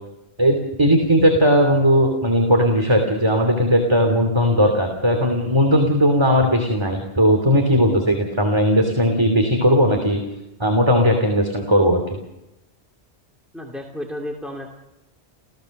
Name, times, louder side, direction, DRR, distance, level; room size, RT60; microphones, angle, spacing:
voice 1, 0.4-10.2 10.6-12.0, equal, 25° right, 4 dB, 2.9 m, -17 dB
voice 2, 13.5-14.7, left 1 dB, ahead, 0 dB, 2.5 m, -32 dB
29.5 x 16.5 x 6.6 m, 0.91 s
omnidirectional pair, 1.1 m